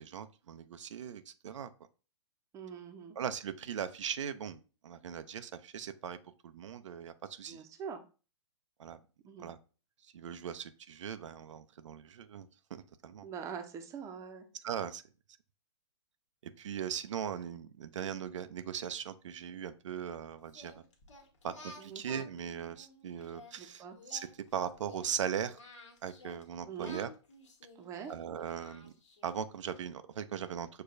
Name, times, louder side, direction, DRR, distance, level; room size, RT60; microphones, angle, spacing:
voice 1, 0.0-1.7 3.2-6.2 6.4-7.6 8.8-9.0 9.4-9.6 10.1-13.3 14.6-15.0 16.6-20.8 21.4-23.8 24.1-24.3 24.5-25.6 26.0-27.1 28.1-28.9 29.2-30.7, right 8 dB, 90° right, 10 dB, 0.4 m, -39 dB
voice 2, 2.5-3.2 7.5-8.0 9.2-9.5 13.2-14.5 21.8-22.0 23.5-24.0 26.6-27.0 27.8-28.1, right 7 dB, 20° right, 6 dB, 0.5 m, -43 dB
Singing, 20.5-23.5 24.0-26.4 26.8-29.4, left 2 dB, 85° left, 1.2 m, -53 dB
6.5 x 2.2 x 2.5 m, 0.34 s
hypercardioid pair, 135°, 15 cm